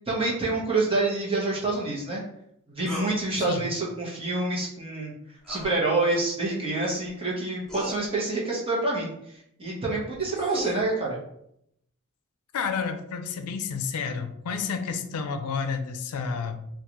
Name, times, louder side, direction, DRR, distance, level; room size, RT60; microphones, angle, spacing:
voice 1, 0.1-2.2 2.7-5.1 5.5-9.1 9.6-11.2, right 2 dB, 25° right, -4 dB, 0.9 m, -27 dB
sound 1, 2.9-3.1 5.4-5.7 7.0-7.1 7.7-8.0 10.0-10.8, equal, 5° left, 0.6 m, -34 dB
voice 2, 12.5-16.6, left 5 dB, 90° left, 8 dB, 0.4 m, -30 dB
3.7 x 2.4 x 2.9 m, 0.75 s
head